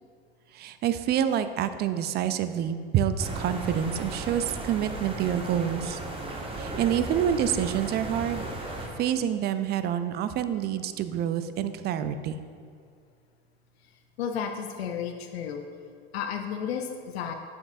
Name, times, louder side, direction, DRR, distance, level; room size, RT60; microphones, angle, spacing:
voice 1, 0.5-6.0 6.5-8.5 9.0-12.4, right 9 dB, 35° right, 11 dB, 0.4 m, -27 dB
sound 1, 3.2-8.9, right 2 dB, 15° right, 0.9 m, -35 dB
voice 2, 14.2-15.6 16.1-17.3, left 7 dB, 80° left, 5 dB, 0.5 m, -32 dB
7.1 x 6.3 x 2.6 m, 2.1 s
hypercardioid pair, 85°, 31 cm